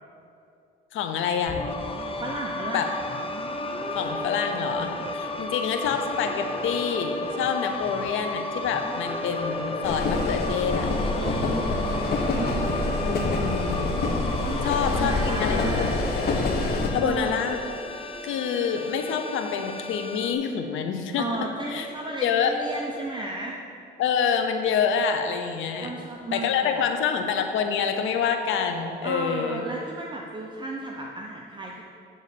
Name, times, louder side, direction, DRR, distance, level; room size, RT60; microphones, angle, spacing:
voice 1, 0.9-1.7 2.7-2.9 3.9-10.9 13.0-14.0 14.6-16.6 16.9-17.6 18.2-21.3 21.7-21.9 22.2-22.5 24.0-25.9 26.3-29.6, left 7 dB, 85° left, 6 dB, 0.7 m, -27 dB
sound 1, 1.5-20.3, left 1 dB, 30° left, 0.7 m, -33 dB
voice 2, 2.2-2.9 11.2-12.9 14.4-15.9 17.0-17.4 21.2-23.5 25.8-26.8 29.0-31.8, right 2 dB, 25° right, -1 dB, 0.7 m, -34 dB
sound 2, 9.8-16.9, left 2 dB, 50° left, 1.2 m, -26 dB
8.9 x 4.0 x 6.7 m, 2.5 s
cardioid pair, 90°, 20 cm